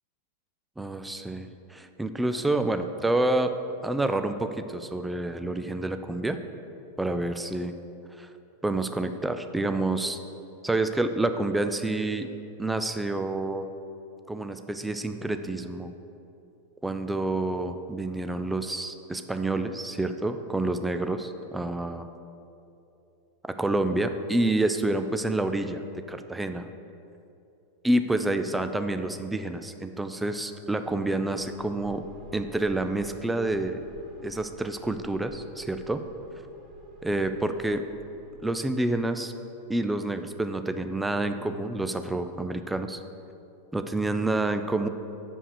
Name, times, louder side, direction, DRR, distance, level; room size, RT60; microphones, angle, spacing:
voice 1, 0.8-3.5 3.8-6.4 7.0-7.7 8.2-8.3 8.6-10.2 10.6-12.3 12.6-13.7 14.3-15.9 16.8-22.1 23.6-25.8 26.1-26.7 27.8-32.0 32.3-33.8 34.2-36.0 37.0-37.8 38.4-39.3 39.7-43.0 43.7-44.9, right 2 dB, 5° right, 8 dB, 0.4 m, -28 dB
sound 1, 31.0-38.8, equal, 30° right, 1.1 m, -48 dB
6.4 x 5.4 x 6.7 m, 2.7 s
figure-of-eight pair, 90°, 0 cm